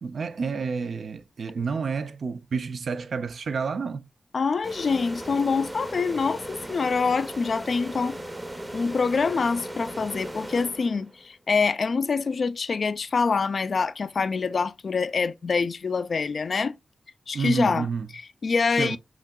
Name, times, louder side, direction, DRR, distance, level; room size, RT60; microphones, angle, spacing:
voice 1, 0.0-4.1 17.3-18.1 18.7-19.0, right 5 dB, 75° right, 0.3 m, -29 dB
voice 2, 4.3-8.2 8.7-16.8 17.3-17.9 18.1-19.0, left 4 dB, 65° left, 0.3 m, -25 dB
sound 1, 4.6-11.3, right 1 dB, 20° right, 0.6 m, -37 dB
5.7 x 2.7 x 2.2 m
cardioid pair, 65°, 0 cm